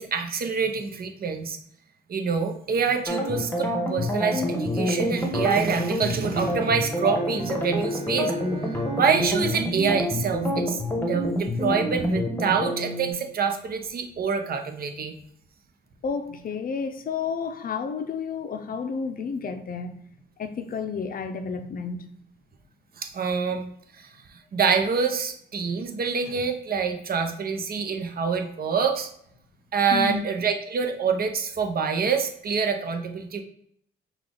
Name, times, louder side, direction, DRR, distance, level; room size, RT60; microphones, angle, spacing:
voice 1, 0.0-1.6 2.1-8.3 8.9-15.1 23.0-23.7 24.0-24.1 24.5-29.1 29.7-33.4, right 5 dB, 50° right, 0.8 m, -26 dB
sound 1, 3.1-13.1, equal, 10° left, 1.1 m, -27 dB
Bowed string instrument, 6.2-11.1, right 3 dB, 35° right, 1.1 m, -40 dB
voice 2, 16.0-19.9 20.4-22.0 29.9-30.2, left 5 dB, 45° left, 0.6 m, -31 dB
5.5 x 2.4 x 3.8 m
cardioid pair, 90°, 20 cm